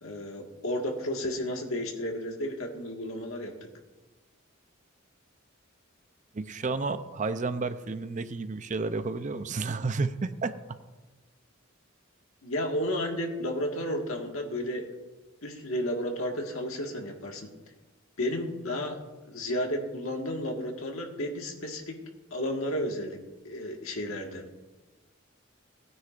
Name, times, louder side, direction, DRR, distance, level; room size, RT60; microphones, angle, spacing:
voice 1, 0.0-3.6 12.4-14.8 15.4-17.5 18.2-19.0 19.3-22.0 22.3-23.2 23.5-24.5, left 1 dB, 90° left, 2 dB, 1.7 m, -32 dB
voice 2, 6.3-10.8, right 3 dB, 35° right, 11 dB, 0.5 m, -31 dB
18.5 x 9.5 x 2.5 m, 1.2 s
head